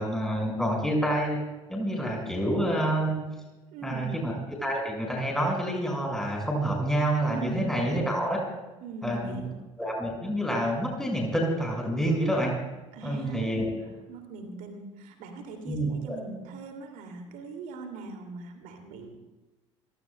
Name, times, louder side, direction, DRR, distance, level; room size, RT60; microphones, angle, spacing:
voice 1, 0.0-1.4 1.7-3.2 3.8-4.3 4.6-8.4 9.0-9.5 9.8-12.5 13.0-13.7 15.7-16.2, right 1 dB, 5° left, 0 dB, 5.1 m, -28 dB
voice 2, 3.7-4.1 7.3-7.6 8.8-9.5 12.9-19.2, right 3 dB, 55° right, 5 dB, 2.4 m, -40 dB
28.5 x 17.0 x 2.2 m, 1.1 s
figure-of-eight pair, 55°, 16 cm